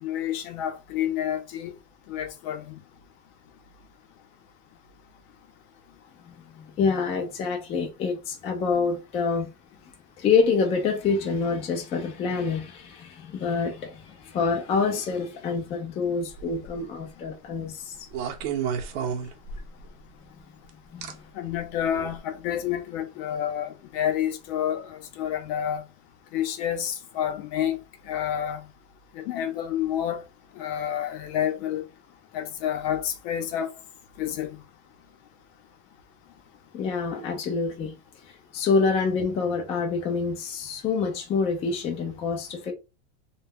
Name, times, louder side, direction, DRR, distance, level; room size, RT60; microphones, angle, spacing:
voice 1, 0.0-1.7 2.1-2.8 21.3-25.8 26.3-27.8 28.0-28.7 29.1-30.2 30.6-31.9 32.3-33.7 34.2-34.6, left 10 dB, 55° left, 0.7 m, -29 dB
voice 2, 6.3-9.5 10.2-18.1 20.9-21.1 36.7-38.0 38.3-42.7, left 5 dB, 20° left, 0.3 m, -27 dB
sound 1, 16.3-16.8 18.1-19.9 21.0-21.1 21.9-22.1, right 7 dB, 65° right, 0.7 m, -31 dB
2.2 x 2.0 x 3.4 m
supercardioid pair, 140°, 33 cm